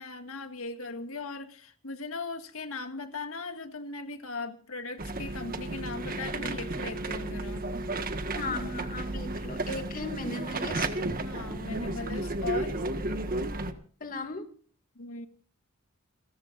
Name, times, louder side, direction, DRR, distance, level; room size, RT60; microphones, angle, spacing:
voice 1, 0.0-7.7 11.2-12.9 15.0-15.3, left 3 dB, 70° left, 6 dB, 2.0 m, -38 dB
sound 1, 5.0-13.7, right 2 dB, 40° right, 1.6 m, -33 dB
voice 2, 8.3-11.0 14.0-14.5, left 3 dB, 40° left, 6 dB, 2.4 m, -37 dB
29.0 x 14.0 x 2.6 m, 0.43 s
head